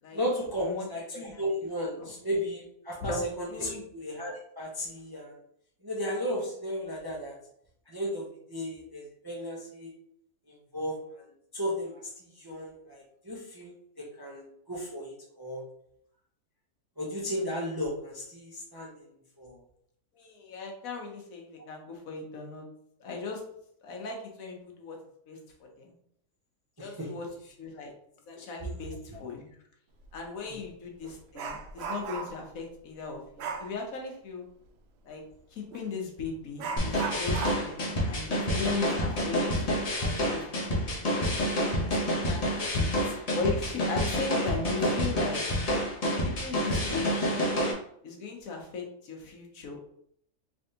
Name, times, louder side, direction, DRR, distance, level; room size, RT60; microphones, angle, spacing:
voice 1, 0.1-5.3 5.8-7.4 7.9-9.9 10.5-11.0 11.5-15.7 17.0-19.1 19.4-19.6 26.8-27.1 29.1-29.2, equal, 25° right, -4 dB, 0.5 m, -35 dB
voice 2, 1.1-1.4 2.0-2.1 3.0-3.9 7.1-7.2 20.1-22.7 23.0-23.4 23.8-25.0 25.3-25.9 26.8-27.3 27.6-27.9 28.3-29.6 30.1-34.5 35.0-35.2 35.5-39.4 40.0-41.0 42.2-45.5 46.2-47.5 48.0-49.8, left 4 dB, 70° left, 1 dB, 1.2 m, -37 dB
Dog, 30.0-30.2 30.6-32.5 33.4-33.7 35.7-35.9 36.6-39.9 40.2-40.3 40.8-40.9 41.6-42.0 42.3-42.6, right 5 dB, 75° right, 0.6 m, -38 dB
sound 1, 36.8-47.7, equal, 35° left, 0.6 m, -28 dB
3.4 x 3.3 x 2.8 m, 0.69 s
omnidirectional pair, 1.6 m